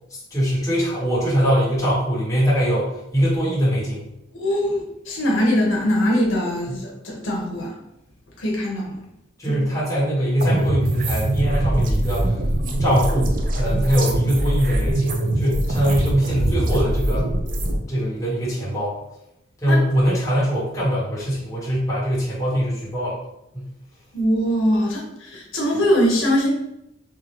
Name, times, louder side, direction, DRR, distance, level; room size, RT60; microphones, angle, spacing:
voice 1, 0.1-4.1 6.7-6.8 9.4-12.4 12.8-17.3 17.9-19.0 19.6-23.2 23.5-23.7, equal, 15° left, -7 dB, 1.3 m, -22 dB
voice 2, 4.3-7.8 8.4-9.0 9.4-9.5 19.7-19.8 24.1-26.5, equal, 75° left, -2 dB, 1.0 m, -22 dB
sound 1, 10.4-17.8, right 1 dB, 45° right, 0.5 m, -22 dB
3.8 x 3.2 x 3.0 m, 0.83 s
head